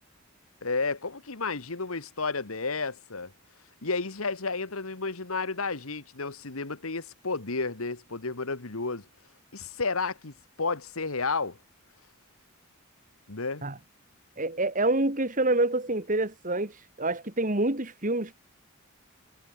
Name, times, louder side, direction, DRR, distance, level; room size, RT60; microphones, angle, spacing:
voice 1, 0.6-3.3 3.8-9.1 9.5-11.6 13.3-13.6, left 4 dB, 80° left, 1.8 m, -32 dB
voice 2, 14.4-18.3, right 2 dB, 40° right, 2.6 m, -27 dB
head